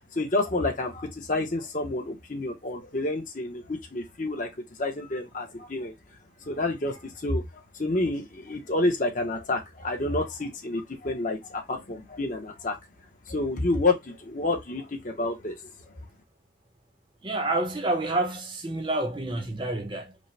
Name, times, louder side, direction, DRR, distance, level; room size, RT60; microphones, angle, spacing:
voice 1, 0.1-4.5 4.8-5.9 6.5-7.4 7.7-12.8 13.3-15.6, left 2 dB, 45° left, 0.8 m, -29 dB
voice 2, 17.2-20.2, right 2 dB, 25° right, 0.7 m, -28 dB
5.2 x 2.1 x 3.2 m
head